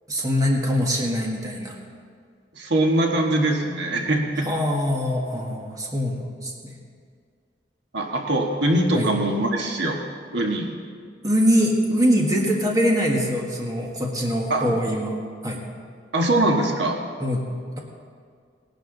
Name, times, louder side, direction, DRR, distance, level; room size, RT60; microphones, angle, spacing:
voice 1, 0.1-1.8 4.4-6.8 8.9-9.1 11.2-15.2 15.4-15.6 17.2-17.4, equal, 20° right, -1 dB, 1.5 m, -23 dB
voice 2, 2.5-4.5 7.9-10.0 10.3-10.7 14.5-14.7 16.1-17.0, right 1 dB, 70° right, 1 dB, 1.5 m, -22 dB
18.0 x 11.5 x 3.9 m, 2.1 s
head